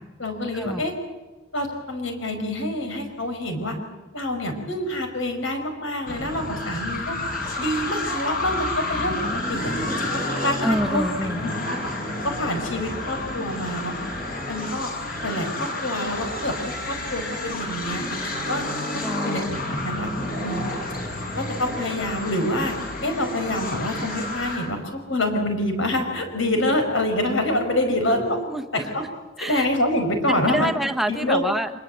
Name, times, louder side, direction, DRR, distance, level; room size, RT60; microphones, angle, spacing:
voice 1, 0.2-0.9 1.5-3.8 4.1-7.2 7.6-9.2 9.5-11.8 12.2-13.9 14.5-14.9 15.2-20.1 20.4-20.6 21.4-22.8 23.0-28.4 28.7-29.0 29.4-30.7 31.1-31.4, left 1 dB, 75° left, 5 dB, 5.0 m, -26 dB
sound 1, 6.1-24.7, left 2 dB, 45° left, 5.8 m, -30 dB
voice 2, 10.6-11.5 19.0-19.6 27.9-29.1 29.4-29.7 30.3-31.7, equal, ahead, 5 dB, 1.1 m, -28 dB
25.0 x 21.5 x 8.0 m, 1.2 s
head